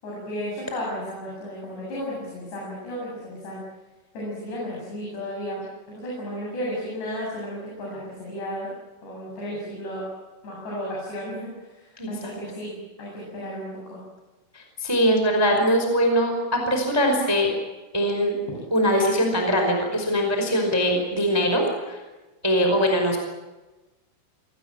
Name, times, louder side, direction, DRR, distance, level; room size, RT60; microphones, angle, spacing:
voice 1, 0.0-3.6 4.1-5.6 5.9-8.7 9.0-10.0 10.4-14.0, equal, 55° left, -4 dB, 9.8 m, -33 dB
voice 2, 12.0-12.3 14.5-17.5 17.9-18.3 18.7-22.0 22.4-23.2, equal, 5° right, 3 dB, 4.3 m, -22 dB
25.5 x 19.0 x 9.0 m, 1.1 s
omnidirectional pair, 5.8 m